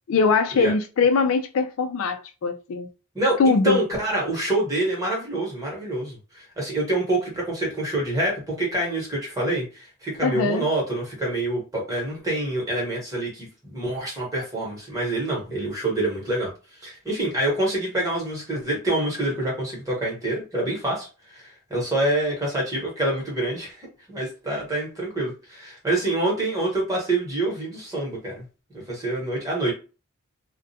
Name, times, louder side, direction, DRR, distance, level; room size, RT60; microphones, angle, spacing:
voice 1, 0.1-2.9 3.4-3.8 10.2-10.7, left 4 dB, 65° left, 0.3 m, -21 dB
voice 2, 3.1-16.5 16.8-28.4 28.7-29.7, right 1 dB, 15° right, 1.1 m, -26 dB
2.4 x 2.1 x 2.7 m
head